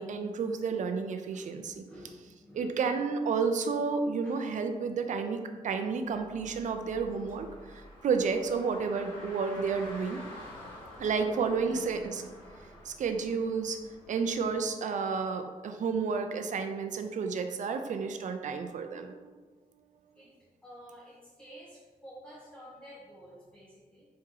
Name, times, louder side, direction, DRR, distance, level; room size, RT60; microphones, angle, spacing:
voice 1, 0.0-1.8 2.5-10.2 11.0-12.3 12.8-13.8 14.1-19.2, right 5 dB, 60° right, 7 dB, 0.4 m, -31 dB
voice 2, 1.3-2.7 4.2-4.4 20.2-20.3 20.6-24.0, equal, 10° left, -7 dB, 0.9 m, -51 dB
Car, 6.0-14.6, left 1 dB, 35° left, 1.3 m, -49 dB
4.3 x 2.9 x 3.7 m, 1.4 s
wide cardioid pair, 125°, 14 cm